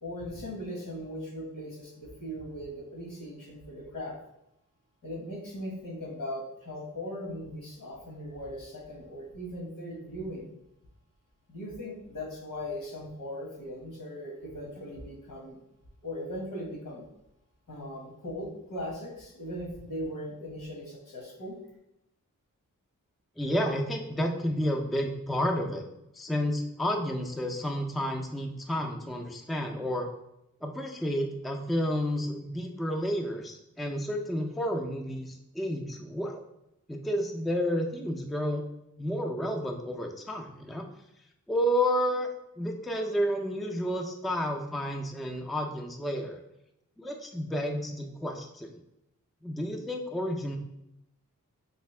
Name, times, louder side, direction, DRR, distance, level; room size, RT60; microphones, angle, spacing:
voice 1, 0.0-4.2 5.0-10.5 11.5-15.6 16.0-17.1 17.7-21.6, equal, 75° left, -2 dB, 1.3 m, -39 dB
voice 2, 23.4-25.8 26.1-30.1 30.6-36.4 36.9-38.6 39.0-40.9 41.5-42.3 42.6-46.4 47.0-48.7 49.4-50.6, equal, ahead, 2 dB, 0.4 m, -31 dB
3.3 x 2.7 x 3.2 m, 0.85 s
cardioid pair, 45°, 33 cm